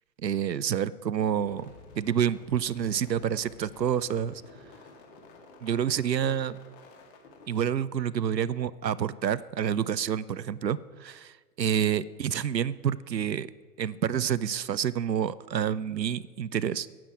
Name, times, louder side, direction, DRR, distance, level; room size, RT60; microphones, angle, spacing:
voice 1, 0.2-4.4 5.6-6.6 7.5-13.5 13.8-16.9, right 9 dB, 90° right, 18 dB, 0.6 m, -28 dB
sound 1, 1.4-7.5, left 3 dB, 30° left, 1.9 m, -51 dB
12.0 x 8.9 x 4.7 m, 1.4 s
figure-of-eight pair, 115°, 49 cm